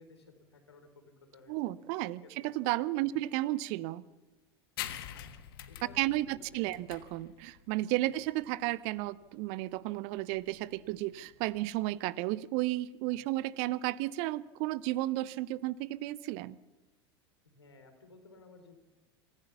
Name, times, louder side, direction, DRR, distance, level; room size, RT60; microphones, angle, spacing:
voice 1, 0.0-1.6 2.2-2.5 3.0-3.2 5.1-6.4 6.7-6.8 8.0-8.2 13.3-13.4 17.4-18.8, left 3 dB, 75° left, 6 dB, 3.8 m, -57 dB
voice 2, 1.5-4.0 6.0-16.6, right 17 dB, 45° right, 20 dB, 0.7 m, -33 dB
sound 1, 4.8-11.9, left 11 dB, 60° left, 1.4 m, -46 dB
26.0 x 15.0 x 7.1 m, 1.1 s
figure-of-eight pair, 80°, 14 cm